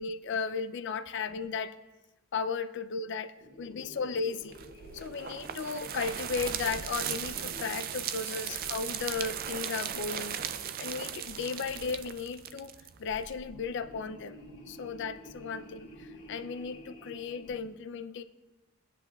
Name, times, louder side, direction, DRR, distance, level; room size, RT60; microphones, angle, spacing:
voice 1, 0.0-1.8 2.3-3.3 3.6-4.5 4.9-10.4 10.8-12.7 13.0-14.4 14.7-18.2, left 5 dB, 55° left, 10 dB, 0.4 m, -35 dB
sound 1, 3.4-8.0 8.4-9.6 9.9-10.7 11.2-12.2 12.9-17.6, equal, 35° left, 2.0 m, -51 dB
sound 2, 4.5-13.3, right 9 dB, 40° right, 0.3 m, -37 dB
23.0 x 7.9 x 2.3 m, 1.1 s
head